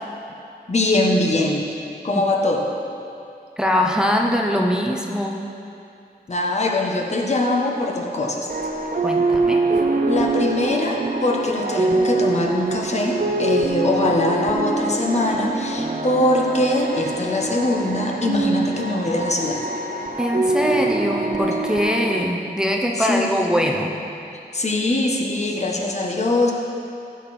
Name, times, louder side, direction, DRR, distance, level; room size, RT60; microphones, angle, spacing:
voice 1, 0.7-1.7 2.0-2.7 6.3-8.5 10.1-19.7 23.0-23.4 24.5-26.5, left 2 dB, 40° left, 0 dB, 1.2 m, -22 dB
voice 2, 3.6-5.4 9.0-9.6 20.2-24.0, equal, 5° right, 0 dB, 0.7 m, -22 dB
sound 1, 8.5-22.2, right 2 dB, 55° right, 0.8 m, -24 dB
14.5 x 6.4 x 4.3 m, 2.6 s
wide cardioid pair, 105°, 17 cm